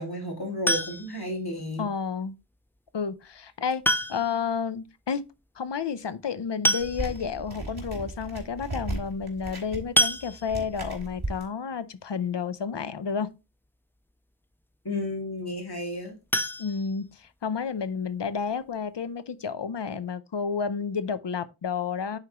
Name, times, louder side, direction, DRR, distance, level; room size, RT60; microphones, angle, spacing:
voice 1, 0.0-1.9 14.8-16.1, left 1 dB, 65° left, 2.6 m, -32 dB
sound 1, 0.7-1.3 2.8-2.9 3.8-4.5 4.8-4.9 5.1-5.2 6.2-6.3 6.6-7.4 7.9-8.0 8.3-8.5 10.0-10.8 16.3-17.5 17.9-18.0 18.4-18.5 18.8-18.9, left 1 dB, 5° left, 0.3 m, -27 dB
voice 2, 1.8-2.4 2.9-3.8 4.1-5.2 5.6-13.3 16.6-22.2, left 6 dB, 85° left, 0.6 m, -31 dB
sound 2, 6.8-11.4, right 2 dB, 60° right, 2.9 m, -36 dB
9.6 x 4.5 x 2.9 m
wide cardioid pair, 45°, 41 cm